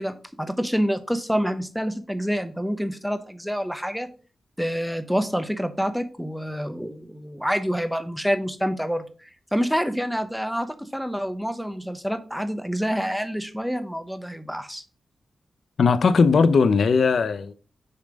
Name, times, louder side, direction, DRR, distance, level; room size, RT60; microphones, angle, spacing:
voice 1, 0.0-4.1 4.6-14.8, equal, ahead, 0.8 m, -27 dB
voice 2, 15.8-17.5, left 5 dB, 70° left, 0.6 m, -18 dB
6.8 x 3.2 x 5.1 m
wide cardioid pair, 85°, 0 cm